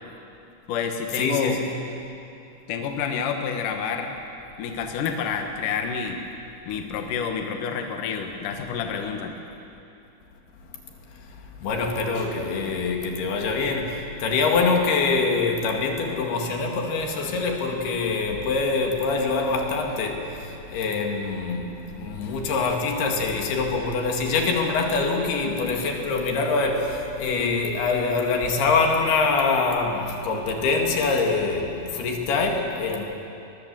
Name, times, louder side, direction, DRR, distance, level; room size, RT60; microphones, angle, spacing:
voice 1, 0.7-1.6 2.7-4.1 4.6-6.2 6.7-9.3, left 6 dB, 65° left, 4 dB, 2.7 m, -28 dB
voice 2, 1.2-1.7 11.6-33.0, left 4 dB, 80° left, 2 dB, 4.1 m, -24 dB
22.5 x 21.5 x 7.6 m, 2.7 s
omnidirectional pair, 4.5 m